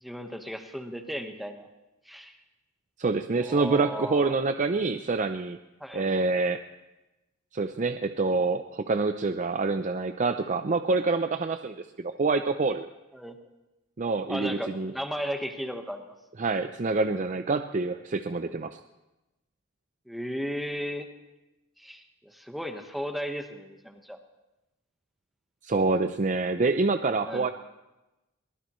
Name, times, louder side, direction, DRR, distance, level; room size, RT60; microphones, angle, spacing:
voice 1, 0.0-1.7 2.1-2.4 3.4-4.3 5.8-6.0 13.1-13.4 14.3-16.0 20.1-21.1 21.8-24.2 27.2-27.5, equal, ahead, 4 dB, 1.2 m, -35 dB
voice 2, 3.0-5.6 5.9-6.6 7.5-12.9 14.0-14.9 16.4-18.8 25.6-27.5, right 3 dB, 40° right, 8 dB, 0.5 m, -26 dB
22.0 x 20.0 x 3.1 m, 1.0 s
head